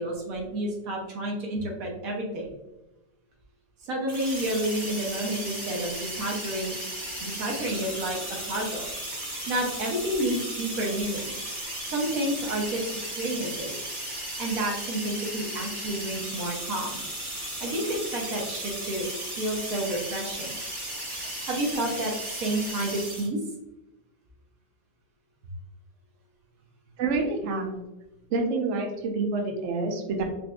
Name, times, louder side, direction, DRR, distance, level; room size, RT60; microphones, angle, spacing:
voice 1, 0.0-2.5 3.8-6.8 7.2-8.2 8.5-9.2 9.5-11.3 11.9-12.8 13.2-13.7 14.1-17.0 17.4-19.1 19.4-20.6 21.4-23.4, right 1 dB, 65° right, -1 dB, 0.9 m, -30 dB
sound 1, 4.1-23.3, right 1 dB, 20° right, 0.6 m, -35 dB
voice 2, 27.0-27.8 28.3-30.2, right 3 dB, 90° right, 3 dB, 0.6 m, -27 dB
4.1 x 2.5 x 2.2 m, 0.95 s
omnidirectional pair, 1.9 m